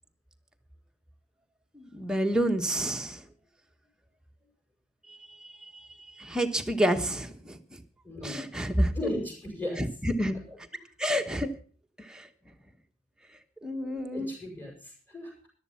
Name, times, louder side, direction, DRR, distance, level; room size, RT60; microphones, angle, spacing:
voice 1, 1.9-3.2 6.2-7.6 8.2-8.9 10.0-10.4 11.0-11.5 12.1-12.2 13.6-14.3, equal, 5° right, 4 dB, 1.3 m, -29 dB
voice 2, 8.0-8.4 8.8-9.8 10.5-10.6 14.1-15.3, equal, 10° left, -3 dB, 6.8 m, -32 dB
14.0 x 12.0 x 5.8 m, 0.42 s
head